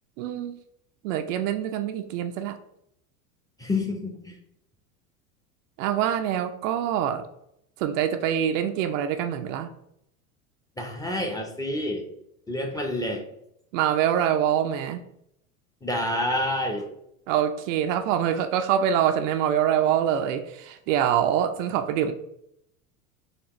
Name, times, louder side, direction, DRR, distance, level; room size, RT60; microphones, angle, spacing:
voice 1, 0.2-0.6 1.0-2.6 5.8-7.3 7.8-9.7 13.7-15.0 17.3-22.1, right 9 dB, 60° right, 7 dB, 0.6 m, -25 dB
voice 2, 3.6-4.4 10.8-12.0 12.5-13.2 15.8-16.9, left 1 dB, 10° left, 2 dB, 0.7 m, -28 dB
4.4 x 2.9 x 3.0 m, 0.75 s
hypercardioid pair, 90°, 43 cm